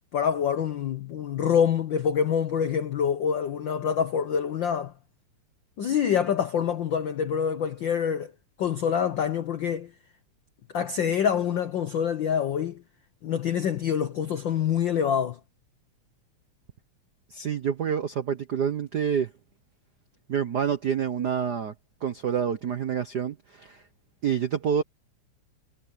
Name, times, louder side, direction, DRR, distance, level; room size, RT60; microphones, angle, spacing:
voice 1, 0.1-4.9 5.8-8.3 8.6-9.9 10.7-12.8 13.2-15.4, left 8 dB, 80° left, 1.0 m, -26 dB
voice 2, 17.3-19.3 20.3-21.7 22.0-23.8 24.2-24.8, right 8 dB, 85° right, 0.9 m, -27 dB
omnidirectional pair, 3.4 m